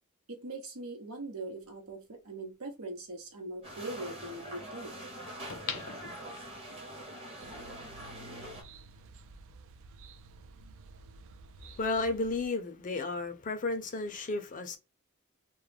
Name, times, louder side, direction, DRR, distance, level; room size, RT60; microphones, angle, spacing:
voice 1, 0.3-4.9, right 2 dB, 90° right, 0.9 m, -41 dB
sound 1, 1.9-2.0 5.5-6.8 7.3-7.4, left 6 dB, 80° left, 0.6 m, -41 dB
sound 2, 3.6-8.6, right 1 dB, 25° right, 0.8 m, -44 dB
sound 3, 7.4-12.5, right 3 dB, 65° right, 0.3 m, -52 dB
voice 2, 11.8-14.8, left 3 dB, 40° left, 0.5 m, -33 dB
2.3 x 2.0 x 3.2 m
head